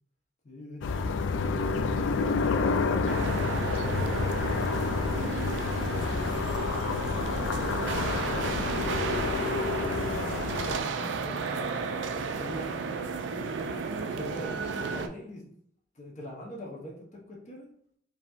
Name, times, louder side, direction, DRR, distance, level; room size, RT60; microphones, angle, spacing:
voice 1, 0.4-1.1 1.6-5.2 5.9-9.2 10.0-11.8 12.4-13.3 14.0-15.4 15.9-17.7, equal, 40° left, -2 dB, 0.8 m, -43 dB
sound 1, 0.8-10.8, left 4 dB, 90° left, 0.3 m, -29 dB
sound 2, 3.1-15.1, right 5 dB, 80° right, 0.4 m, -33 dB
sound 3, 3.9-9.3, equal, ahead, 0.4 m, -41 dB
5.0 x 2.8 x 2.4 m, 0.64 s
head